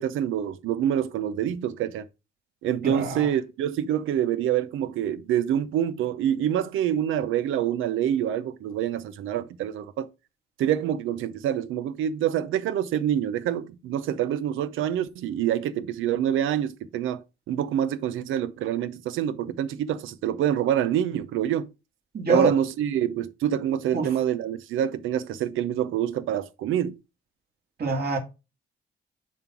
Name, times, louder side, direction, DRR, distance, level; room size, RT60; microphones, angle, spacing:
voice 1, 0.0-2.1 2.6-10.1 10.6-21.7 22.3-27.0, right 10 dB, 85° right, 0.8 m, -26 dB
voice 2, 2.8-3.3 22.1-22.6 23.9-24.1 27.8-28.2, right 3 dB, 55° right, 2.6 m, -24 dB
7.3 x 4.3 x 4.6 m
cardioid pair, 90°, 20 cm